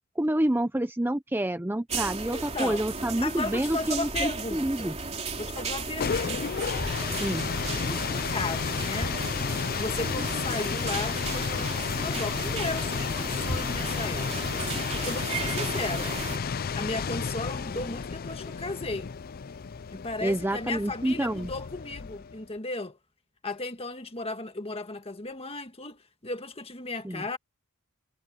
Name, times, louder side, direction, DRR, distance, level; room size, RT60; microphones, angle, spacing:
voice 1, 0.2-4.9 7.2-7.5 20.2-21.5 27.0-27.2, right 1 dB, 10° right, 0.6 m, -28 dB
sound 1, 1.9-16.4, right 4 dB, 30° right, 3.2 m, -35 dB
voice 2, 2.3-2.8 3.2-5.0 5.4-6.5 7.8-9.2 9.8-14.6 14.9-16.5 16.8-19.1 19.9-23.0 23.4-27.4, left 3 dB, 25° left, 1.7 m, -35 dB
sound 2, 5.7-22.4, left 6 dB, 40° left, 0.4 m, -32 dB
head